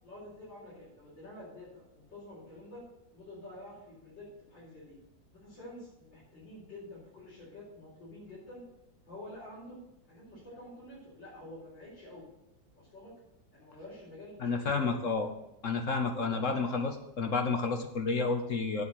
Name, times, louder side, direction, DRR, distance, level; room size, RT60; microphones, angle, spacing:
voice 1, 0.0-2.8 3.1-5.0 5.3-8.6 9.1-9.8 10.1-12.3 12.8-13.1 13.5-15.1 16.2-16.8, left 1 dB, 80° left, -9 dB, 5.3 m, -48 dB
voice 2, 14.4-15.3 15.6-16.9 17.2-18.8, left 4 dB, 50° left, 5 dB, 1.2 m, -30 dB
8.5 x 7.3 x 8.0 m, 0.90 s
omnidirectional pair, 2.0 m